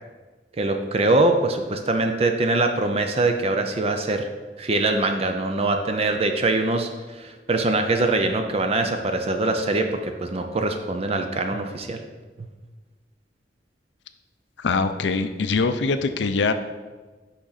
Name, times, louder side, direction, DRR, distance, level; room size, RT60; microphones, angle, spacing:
voice 1, 0.6-4.3 4.6-12.0, right 2 dB, 35° right, 5 dB, 0.5 m, -23 dB
voice 2, 14.6-16.5, left 4 dB, 75° left, 10 dB, 0.5 m, -23 dB
6.3 x 5.7 x 4.0 m, 1.3 s
head